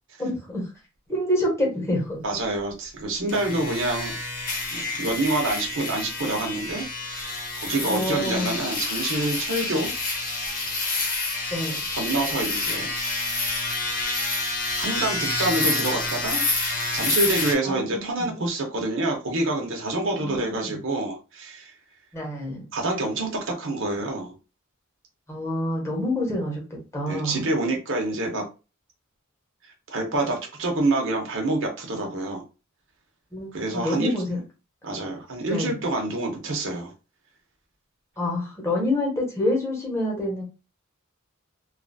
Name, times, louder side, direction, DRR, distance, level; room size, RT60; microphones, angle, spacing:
voice 1, 0.2-0.6 1.1-2.2 7.9-8.6 11.5-11.8 17.6-18.3 20.2-20.8 22.1-22.6 25.3-26.6 26.9-27.5 33.3-34.4 35.5-35.7 38.2-40.4, left 1 dB, 15° left, -2 dB, 1.2 m, -27 dB
voice 2, 2.2-4.2 4.7-9.9 11.9-12.9 14.7-16.5 16.9-21.7 22.7-24.3 27.1-28.4 29.9-32.4 33.5-34.1 34.8-36.9, right 2 dB, 65° right, 1 dB, 0.9 m, -27 dB
sound 1, 3.3-17.5, left 3 dB, 40° left, 1.0 m, -28 dB
2.7 x 2.4 x 2.6 m, 0.30 s
head